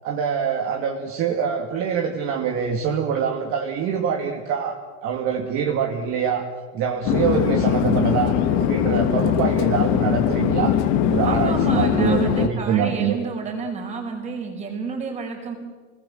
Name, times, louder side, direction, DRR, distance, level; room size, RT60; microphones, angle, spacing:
voice 1, 0.0-6.5 6.7-8.3 8.6-10.8 11.1-13.2, right 7 dB, 35° right, 2 dB, 2.4 m, -24 dB
Chatter / Fixed-wing aircraft airplane, 7.1-12.5, left 9 dB, 45° left, 1.9 m, -21 dB
voice 2, 11.2-15.5, right 4 dB, 20° right, 2 dB, 5.5 m, -30 dB
28.5 x 20.0 x 7.8 m, 1.4 s
supercardioid pair, 170°, 36 cm